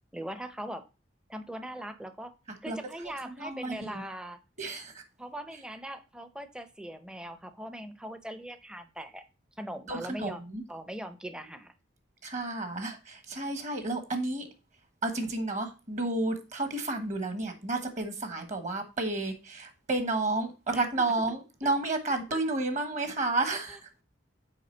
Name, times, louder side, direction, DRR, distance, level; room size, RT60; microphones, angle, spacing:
voice 1, 0.1-0.9 1.3-2.3 2.6-4.4 5.2-9.2 9.6-10.4 10.7-11.7 20.7-21.1 21.6-21.7 22.3-22.4 23.7-23.8, right 1 dB, 5° right, 0.6 m, -40 dB
voice 2, 3.3-4.0 4.6-5.0 9.9-10.6 12.2-14.5 15.0-23.9, right 2 dB, 40° right, 1.2 m, -31 dB
6.5 x 4.7 x 4.4 m
head